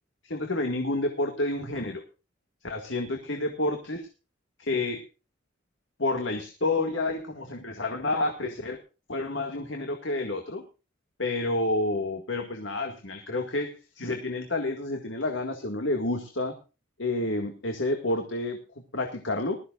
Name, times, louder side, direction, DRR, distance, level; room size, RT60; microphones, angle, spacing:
voice 1, 0.2-2.0 2.6-4.1 4.6-5.1 6.0-8.8 9.1-10.6 11.2-16.6 17.0-18.6 18.9-19.6, left 2 dB, 75° left, 4 dB, 2.0 m, -29 dB
20.5 x 13.5 x 2.5 m, 0.32 s
head